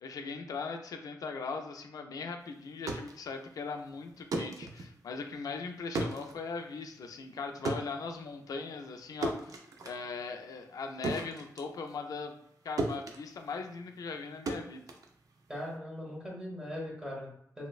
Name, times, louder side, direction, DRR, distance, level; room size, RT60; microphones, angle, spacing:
voice 1, 0.0-12.4 12.6-14.9, left 4 dB, 70° left, 4 dB, 0.3 m, -39 dB
sound 1, 2.6-12.5 12.8-15.7, right 2 dB, 65° right, 0.4 m, -38 dB
voice 2, 15.5-17.7, left 1 dB, 10° right, -5 dB, 0.9 m, -40 dB
3.1 x 2.0 x 2.3 m, 0.70 s
wide cardioid pair, 120°, 6 cm